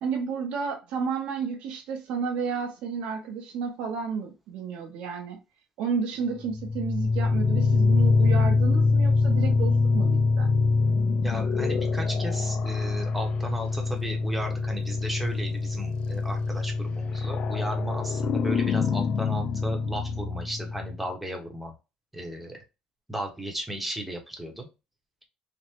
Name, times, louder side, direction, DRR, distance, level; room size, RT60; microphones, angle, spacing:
voice 1, 0.0-5.4 5.8-10.5, right 5 dB, 80° right, 0.7 m, -31 dB
sound 1, 6.4-21.0, left 4 dB, 60° left, 0.4 m, -25 dB
voice 2, 11.2-21.7 22.1-22.6 23.1-24.7, right 1 dB, 5° right, 0.8 m, -35 dB
3.4 x 2.0 x 2.8 m
cardioid pair, 135°, 2 cm